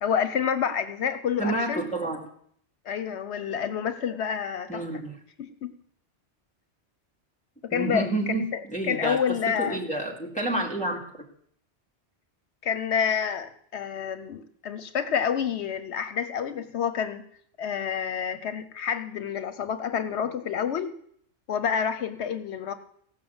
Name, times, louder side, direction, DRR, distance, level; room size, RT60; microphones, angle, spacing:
voice 1, 0.0-1.8 2.9-4.8 5.4-5.7 7.6-9.8 12.6-17.2 17.6-21.0 21.5-22.7, left 7 dB, 80° left, 12 dB, 1.0 m, -28 dB
voice 2, 1.4-2.3 4.7-5.1 7.7-11.0, right 2 dB, 5° left, 0 dB, 2.5 m, -29 dB
16.0 x 6.1 x 7.9 m, 0.64 s
omnidirectional pair, 1.1 m